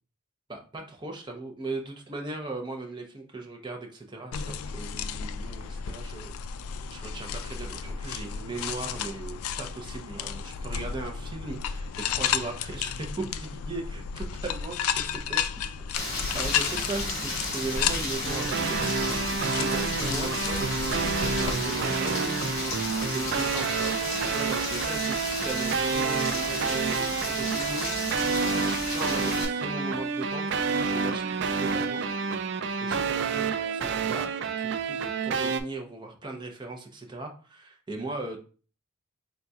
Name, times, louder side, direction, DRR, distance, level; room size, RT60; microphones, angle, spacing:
voice 1, 0.5-6.3 6.9-15.5 16.3-18.9 19.3-22.3 23.0-23.9 24.3-32.0 32.6-38.4, right 2 dB, 20° right, 2 dB, 0.7 m, -38 dB
sound 1, 4.3-21.5, left 7 dB, 85° left, 0.3 m, -33 dB
Rain, 15.9-29.4, left 2 dB, 65° left, 1.7 m, -33 dB
sound 2, 18.2-35.6, right 5 dB, 55° right, 0.4 m, -29 dB
4.1 x 3.9 x 2.4 m, 0.37 s
head